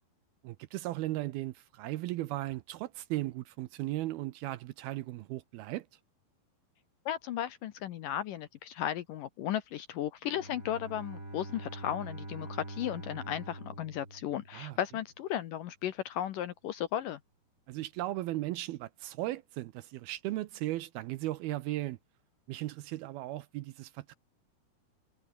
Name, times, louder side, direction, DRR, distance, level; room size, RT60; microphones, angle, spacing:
voice 1, 0.4-5.9 14.5-14.8 17.7-22.0 22.5-24.2, right 16 dB, 80° right, 2.4 m, -36 dB
voice 2, 7.1-17.2, left 11 dB, 70° left, 2.2 m, -35 dB
Bowed string instrument, 10.3-15.0, right 2 dB, 20° right, 7.1 m, -45 dB
omnidirectional pair, 4.9 m